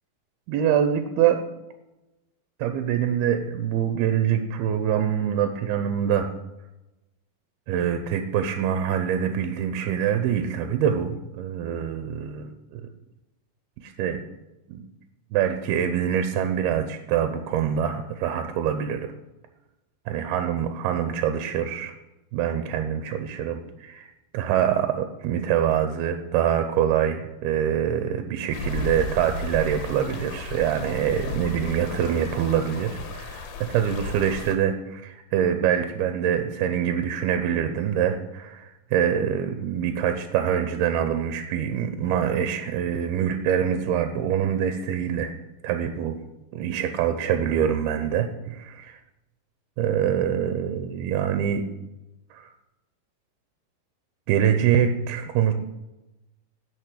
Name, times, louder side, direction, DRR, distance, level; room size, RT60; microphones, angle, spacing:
voice 1, 0.5-1.4 2.6-6.3 7.7-12.4 12.7-12.8 13.8-14.2 14.7-14.9 15.3-19.1 20.1-21.9 22.3-45.3 45.6-46.2 46.5-49.0 49.8-51.6 52.3-52.5 54.3-55.5, right 9 dB, 85° right, 8 dB, 2.7 m, -25 dB
sound 1, 28.5-34.6, left 2 dB, 80° left, 3.2 m, -34 dB
11.5 x 5.9 x 8.4 m, 0.99 s
omnidirectional pair, 4.5 m